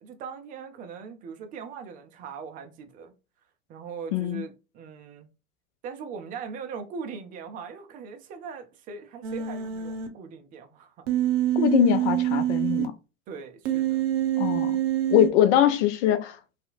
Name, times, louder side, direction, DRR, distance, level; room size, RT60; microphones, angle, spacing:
voice 1, 0.0-3.1 3.7-5.3 5.8-11.0 13.3-14.1, right 6 dB, 20° right, 0.4 m, -40 dB
voice 2, 4.1-4.4 11.6-12.9 14.4-14.7 15.1-16.4, left 11 dB, 55° left, 0.6 m, -22 dB
Human voice, 9.2-10.1 11.1-12.9 13.7-15.3, right 12 dB, 60° right, 0.7 m, -25 dB
2.7 x 2.4 x 2.4 m
hypercardioid pair, 95°, 42 cm